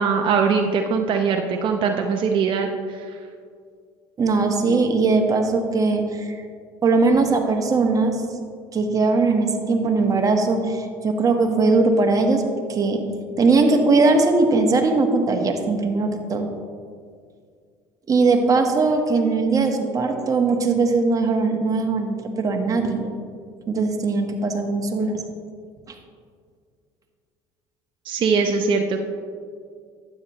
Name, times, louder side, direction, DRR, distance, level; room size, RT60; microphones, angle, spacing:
voice 1, 0.0-3.2 28.1-29.0, right 5 dB, 50° right, 3 dB, 0.7 m, -21 dB
voice 2, 4.2-6.4 6.8-8.2 8.7-12.4 12.7-13.0 13.4-16.5 18.1-23.1 23.7-25.2 25.9-26.0, right 3 dB, 30° right, 3 dB, 1.4 m, -20 dB
12.0 x 8.7 x 3.1 m, 2.1 s
supercardioid pair, 85°, 11 cm